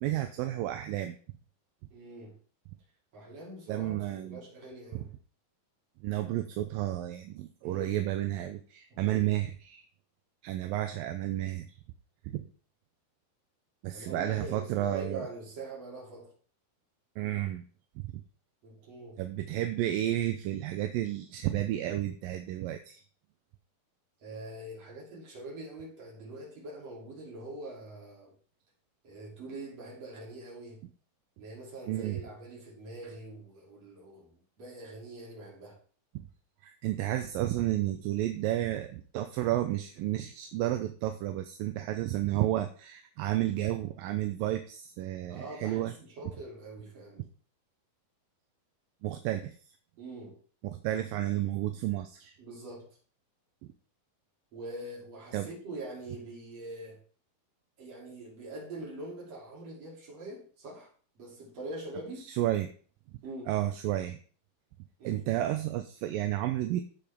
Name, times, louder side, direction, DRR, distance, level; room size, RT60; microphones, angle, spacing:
voice 1, 0.0-1.2 3.7-4.4 6.0-9.8 10.4-11.7 12.3-12.5 13.8-15.3 17.2-17.6 18.0-18.2 19.2-23.0 31.9-32.2 36.6-45.9 49.0-49.6 50.6-52.4 55.3-55.5 62.3-62.7 63.5-64.2 65.0-66.8, right 14 dB, 80° right, 7 dB, 2.2 m, -31 dB
voice 2, 1.9-2.4 3.1-5.1 7.6-8.0 8.9-9.3 13.9-16.3 18.6-19.2 24.2-28.3 29.0-30.8 31.4-35.8 45.3-47.2 50.0-50.4 52.4-53.0 54.5-57.0 57.8-60.9 61.2-62.3 63.2-63.5 65.0-65.2, right 2 dB, 45° right, -3 dB, 3.9 m, -44 dB
14.5 x 5.6 x 3.5 m, 0.41 s
omnidirectional pair, 4.4 m